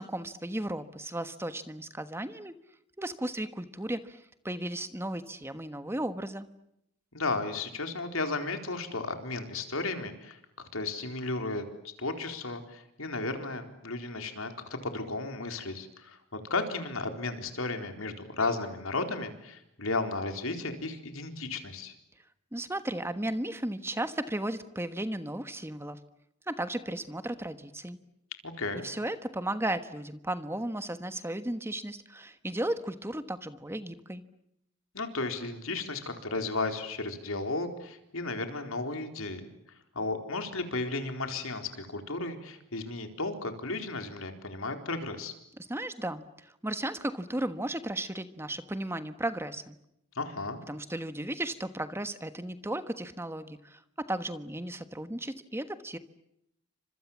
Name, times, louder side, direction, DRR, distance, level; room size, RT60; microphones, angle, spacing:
voice 1, 0.0-2.5 3.0-6.5 22.5-26.0 26.5-28.0 28.8-34.2 45.6-49.8 50.7-56.0, right 1 dB, 10° right, 10 dB, 1.3 m, -35 dB
voice 2, 7.1-10.4 10.7-11.7 12.0-14.5 14.8-21.9 28.4-28.8 34.9-39.5 39.9-45.3 50.2-50.6, left 3 dB, 80° left, 6 dB, 4.2 m, -34 dB
30.0 x 26.0 x 7.4 m, 0.80 s
head